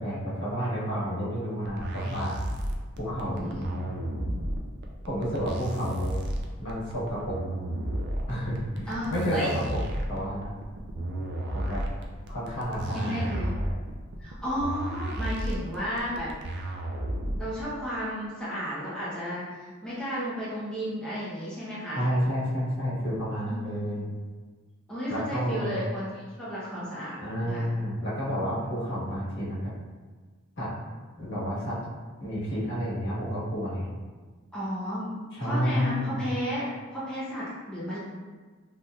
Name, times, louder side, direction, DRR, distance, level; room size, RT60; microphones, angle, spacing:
voice 1, 0.0-2.3 3.0-4.0 5.0-6.2 6.6-7.4 8.3-9.8 10.1-10.5 11.5-11.8 12.3-13.4 13.7-13.8 21.9-24.0 25.1-25.7 27.2-29.7 30.6-30.7 31.2-31.8 32.2-33.9 35.3-36.2, equal, 60° left, -9 dB, 1.3 m, -30 dB
sound 1, 1.6-17.6, right 1 dB, 55° right, 0.4 m, -33 dB
voice 2, 3.3-3.7 8.9-9.5 12.9-13.5 14.2-16.3 17.4-22.0 23.5-24.0 24.9-27.7 34.5-38.0, equal, 5° left, -10 dB, 0.6 m, -33 dB
3.3 x 2.8 x 2.3 m, 1.4 s
head